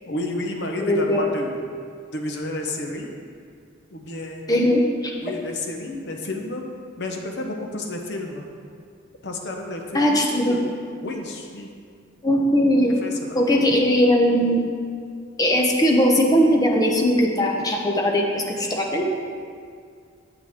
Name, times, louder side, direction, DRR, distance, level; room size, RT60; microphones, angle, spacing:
voice 1, 0.1-1.6 2.1-3.1 3.9-4.5 5.2-6.7 7.0-8.5 9.2-10.7 11.0-11.7 13.0-13.4, left 2 dB, 60° left, 2 dB, 0.9 m, -31 dB
voice 2, 0.8-1.2 4.5-5.1 9.9-10.6 12.2-13.0 13.3-14.7 15.4-19.1, equal, 20° left, 0 dB, 0.8 m, -19 dB
8.8 x 7.7 x 3.6 m, 2.2 s
head